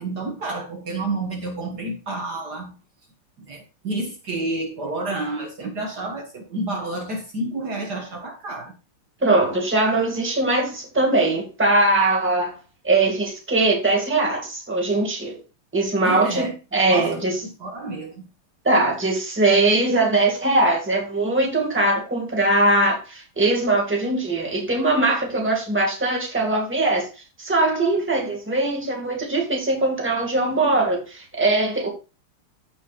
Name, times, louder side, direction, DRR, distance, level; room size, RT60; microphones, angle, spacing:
voice 1, 0.0-2.7 3.4-8.7 16.0-16.5 16.9-18.3, right 2 dB, 50° right, 2.0 m, -30 dB
voice 2, 9.2-12.5 12.8-15.4 15.7-17.4 18.6-27.1 27.4-31.9, right 2 dB, 5° right, 1.9 m, -21 dB
14.5 x 5.5 x 2.5 m
omnidirectional pair, 2.3 m